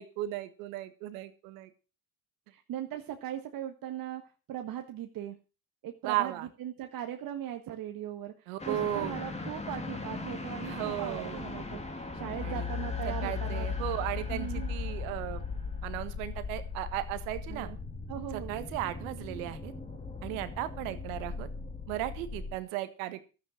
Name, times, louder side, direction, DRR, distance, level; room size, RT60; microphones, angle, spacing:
voice 1, 0.0-1.7 6.0-6.5 8.5-9.2 10.6-11.4 12.4-12.7 13.0-15.4 15.8-17.7 18.3-19.7 20.2-21.5 21.9-23.2, right 14 dB, 80° right, 11 dB, 1.6 m, -35 dB
voice 2, 2.5-4.2 4.5-5.4 5.8-13.7 14.3-14.7 17.5-17.8 18.1-18.5, right 11 dB, 55° right, 5 dB, 1.5 m, -39 dB
sound 1, 8.6-22.6, left 4 dB, 15° left, 2.7 m, -38 dB
12.5 x 8.9 x 6.2 m, 0.34 s
hypercardioid pair, 75°, 40 cm